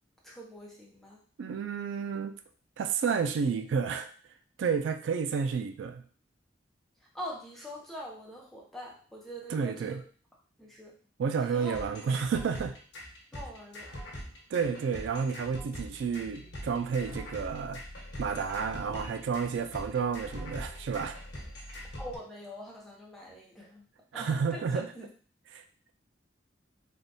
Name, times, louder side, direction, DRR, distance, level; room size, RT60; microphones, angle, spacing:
voice 1, 0.2-1.2 7.1-10.0 10.6-10.9 11.4-11.7 13.3-13.9 22.0-23.8 24.1-25.1, equal, ahead, -3 dB, 0.7 m, -43 dB
voice 2, 1.4-2.3 2.8-4.1 4.6-6.0 9.5-10.0 11.2-12.8 14.5-17.8 18.2-21.2 24.1-24.9 25.5-25.6, right 6 dB, 90° right, 8 dB, 0.3 m, -31 dB
sound 1, 11.7-22.2, equal, 65° left, 1.0 m, -43 dB
3.4 x 2.5 x 2.6 m, 0.42 s
head